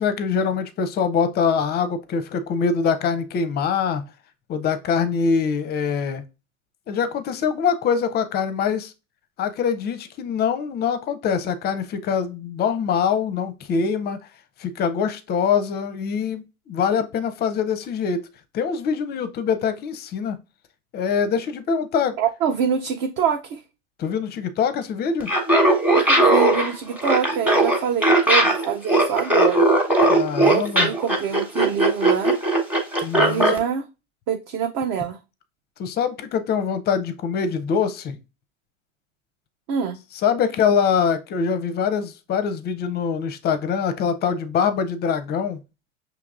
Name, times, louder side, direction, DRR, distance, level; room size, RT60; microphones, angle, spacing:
voice 1, 0.0-4.1 4.5-6.2 6.9-8.9 9.4-14.2 14.6-18.3 18.5-20.4 20.9-22.2 24.0-25.3 30.1-30.9 33.0-33.5 35.8-38.2 40.2-45.6, left 6 dB, 25° left, 0.5 m, -24 dB
voice 2, 22.2-23.6 26.0-29.7 30.4-32.4 33.2-33.9 34.3-35.2 39.7-40.0, right 7 dB, 35° right, 0.4 m, -25 dB
Laughter, 25.2-33.6, right 1 dB, 5° right, 1.0 m, -18 dB
5.7 x 2.9 x 2.4 m
hypercardioid pair, 95°, 38 cm